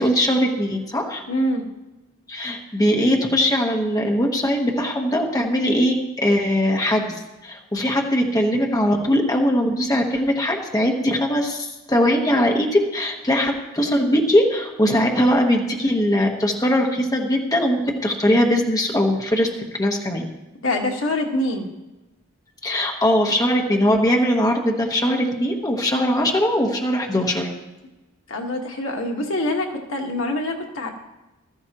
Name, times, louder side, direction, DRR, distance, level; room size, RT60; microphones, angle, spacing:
voice 1, 0.0-1.2 2.3-19.5 19.8-20.3 22.6-27.5, equal, 20° left, 1 dB, 1.2 m, -20 dB
voice 2, 1.3-1.6 20.6-21.7 28.3-30.9, left 1 dB, 70° left, 2 dB, 1.5 m, -25 dB
15.0 x 13.5 x 3.0 m, 1.1 s
head